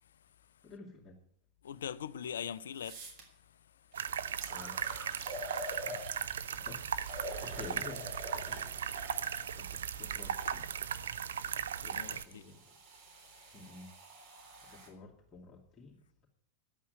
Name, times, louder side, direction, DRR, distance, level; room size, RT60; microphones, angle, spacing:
voice 1, 0.6-1.2 4.5-4.8 5.8-6.1 6.4-9.1 9.6-10.7 11.8-12.8 13.5-14.3 14.6-16.0, left 4 dB, 20° left, 2.5 m, -51 dB
voice 2, 1.6-4.5 12.0-12.4, left 8 dB, 65° left, 0.5 m, -43 dB
sound 1, 2.2-2.3 2.7-3.2 3.9-4.0 4.4-6.5 7.0-10.6 11.5-14.9, equal, 40° right, 3.8 m, -46 dB
sound 2, 3.9-12.2, right 8 dB, 65° right, 0.7 m, -37 dB
10.5 x 8.5 x 9.1 m
figure-of-eight pair, 90°, 0 cm